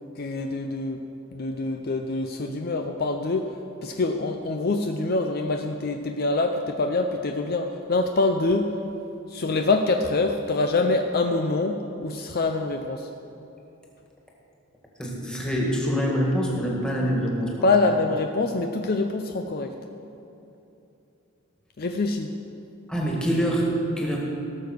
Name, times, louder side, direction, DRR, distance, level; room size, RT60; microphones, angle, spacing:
voice 1, 0.2-1.0 1.3-8.8 9.3-13.1 17.6-19.7 21.8-22.3, left 3 dB, 45° left, 5 dB, 0.5 m, -25 dB
voice 2, 15.0-17.7 22.9-24.2, equal, 5° left, -3 dB, 1.9 m, -25 dB
17.5 x 6.8 x 6.4 m, 2.9 s
head